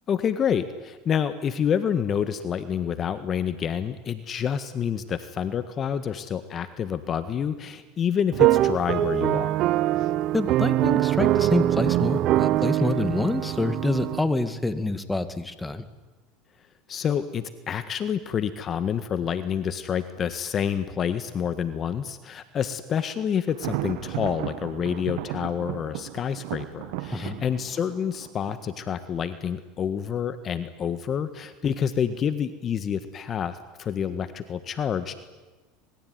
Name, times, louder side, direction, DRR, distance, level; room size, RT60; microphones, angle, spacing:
voice 1, 0.1-9.7 16.9-35.2, left 8 dB, 35° left, 11 dB, 1.6 m, -28 dB
sound 1, 8.3-14.2, right 14 dB, 50° right, 1.0 m, -23 dB
voice 2, 10.3-15.8 27.1-27.4, left 2 dB, 10° left, 11 dB, 2.2 m, -27 dB
Thunder, 23.5-29.3, right 15 dB, 70° right, 1.9 m, -35 dB
26.0 x 22.0 x 9.6 m, 1.2 s
supercardioid pair, 110°, 0 cm